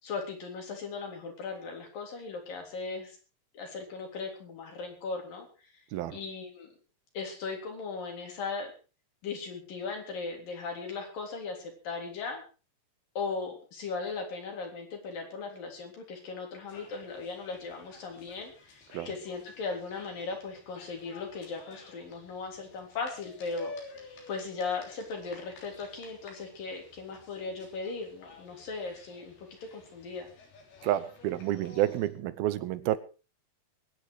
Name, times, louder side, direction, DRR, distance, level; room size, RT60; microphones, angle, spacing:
voice 1, 0.0-3.2 3.5-5.5 6.1-6.7 7.2-8.7 9.2-12.4 13.2-23.7 24.3-29.5 29.7-30.3, left 4 dB, 60° left, 2 dB, 5.2 m, -38 dB
sound 1, 16.7-32.1, left 4 dB, 75° left, 5.3 m, -51 dB
voice 2, 30.8-33.0, right 13 dB, 75° right, 16 dB, 2.7 m, -29 dB
22.0 x 10.0 x 4.7 m, 0.35 s
omnidirectional pair, 4.5 m